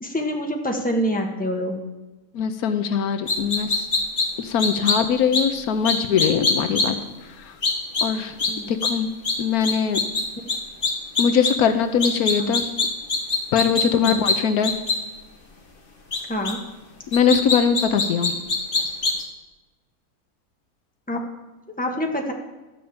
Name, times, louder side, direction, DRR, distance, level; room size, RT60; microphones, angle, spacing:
voice 1, 0.0-1.8 4.7-4.9 8.5-8.7 12.4-12.5 13.9-14.3 16.3-16.6 21.1-21.2 21.8-22.3, equal, 5° left, 1 dB, 1.3 m, -26 dB
voice 2, 2.3-3.7 4.4-7.0 8.0-8.3 8.7-9.1 9.4-10.0 11.2-12.6 13.5-14.7 17.1-18.4, left 7 dB, 75° left, 8 dB, 1.2 m, -21 dB
sound 1, 3.3-4.2 4.6-5.0 5.3-5.4 5.8-6.8 7.6-8.0 8.4-8.5 8.8-8.9 9.2-9.3 9.6-10.2 10.5-10.6 10.8-11.5 12.0-14.3 14.6-14.9 16.1-16.2 16.4-16.5 17.1-19.2, left 4 dB, 35° left, 1.9 m, -22 dB
13.0 x 5.4 x 8.5 m, 1.2 s
omnidirectional pair, 1.6 m